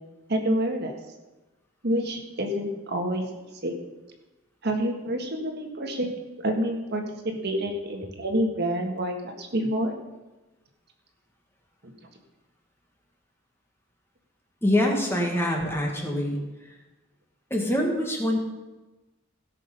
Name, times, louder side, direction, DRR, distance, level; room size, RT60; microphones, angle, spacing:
voice 1, 0.3-0.9 1.8-3.3 3.6-3.8 4.6-6.1 6.4-10.0 11.8-11.9, equal, 55° right, 3 dB, 1.6 m, -28 dB
voice 2, 14.6-16.7 17.5-18.4, left 1 dB, 10° left, 1 dB, 1.8 m, -25 dB
17.0 x 6.4 x 5.3 m, 1.1 s
head